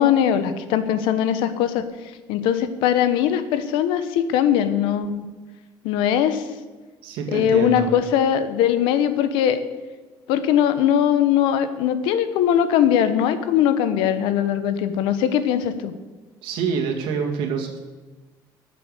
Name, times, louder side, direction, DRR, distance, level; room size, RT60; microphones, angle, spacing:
voice 1, 0.0-1.8 2.3-5.3 5.8-6.5 7.3-9.6 10.3-15.9, left 9 dB, 90° left, 11 dB, 1.1 m, -20 dB
voice 2, 7.0-7.9 16.4-17.8, right 5 dB, 80° right, 2 dB, 2.3 m, -26 dB
14.0 x 7.6 x 6.6 m, 1.2 s
cardioid pair, 170°, 9 cm